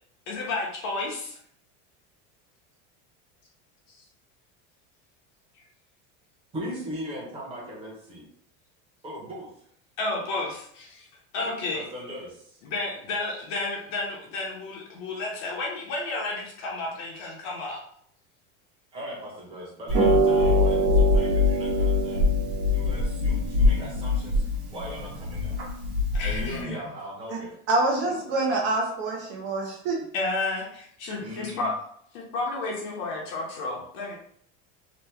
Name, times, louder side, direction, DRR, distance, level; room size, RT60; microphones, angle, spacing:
voice 1, 0.3-1.4 10.0-11.1 11.3-11.8 12.6-17.8 26.1-26.9 30.1-31.7 32.1-34.2, left 3 dB, 50° left, -2 dB, 0.8 m, -31 dB
voice 2, 6.5-8.3 9.0-9.5 11.4-12.6 18.9-22.2 22.7-24.4 24.7-25.5 26.2-27.6 28.1-28.2 31.2-31.7, equal, 15° right, -5 dB, 0.9 m, -38 dB
Harp, 19.9-26.6, left 1 dB, 85° right, 1.1 m, -23 dB
voice 3, 27.7-30.0 31.1-31.2, right 2 dB, 35° right, -1 dB, 0.5 m, -26 dB
2.9 x 2.1 x 3.4 m, 0.65 s
cardioid pair, 175°, 34 cm